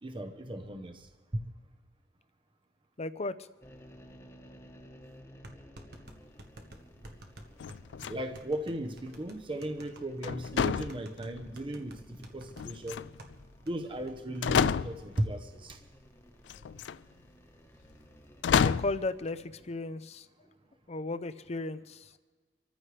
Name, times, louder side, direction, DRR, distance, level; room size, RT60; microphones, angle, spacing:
voice 1, 0.0-1.4 8.1-13.0 13.6-15.8, right 1 dB, 30° right, 6 dB, 0.9 m, -36 dB
voice 2, 3.0-3.3 18.6-20.3 20.9-22.1, left 2 dB, 40° left, 12 dB, 0.6 m, -35 dB
sound 1, 3.6-18.4, equal, 15° left, 1.2 m, -56 dB
sound 2, 5.4-13.4 13.7-13.8 14.1-14.4, right 1 dB, 65° right, 1.3 m, -51 dB
sound 3, 7.6-8.5 10.2-11.5 12.6-13.3 14.0-14.1 14.4-15.2 16.5-17.0 18.4-19.1, left 7 dB, 90° left, 0.4 m, -29 dB
26.0 x 14.0 x 3.4 m, 1.3 s
head